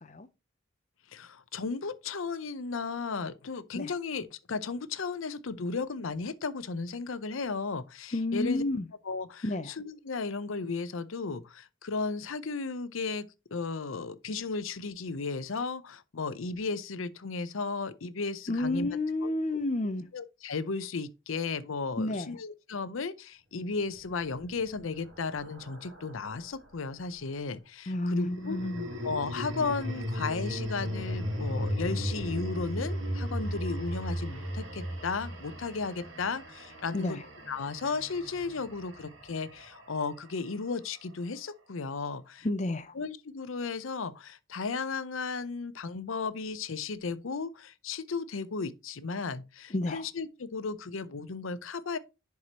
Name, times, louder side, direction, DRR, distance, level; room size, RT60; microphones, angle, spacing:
voice 1, 1.1-8.6 9.0-13.3 13.5-18.9 19.2-19.3 20.1-28.6 29.0-37.2 37.5-42.5 43.0-52.0, left 4 dB, 85° left, 0.7 m, -35 dB
voice 2, 8.1-8.9 9.4-9.8 18.5-20.1 22.0-22.4 27.9-28.9 36.9-37.2 42.4-42.9 49.7-50.1, left 2 dB, 35° left, 0.6 m, -31 dB
sound 1, 24.1-26.6 28.2-40.5, equal, 75° right, 2.5 m, -36 dB
11.0 x 4.7 x 2.9 m
head